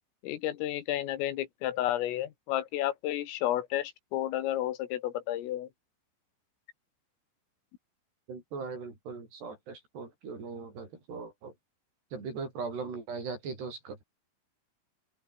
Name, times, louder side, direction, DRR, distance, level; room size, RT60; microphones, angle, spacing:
voice 1, 0.2-5.7, left 13 dB, 80° left, 4.3 m, -31 dB
voice 2, 8.3-11.5 12.1-14.0, right 4 dB, 55° right, 8.7 m, -39 dB
open air
omnidirectional pair, 5.9 m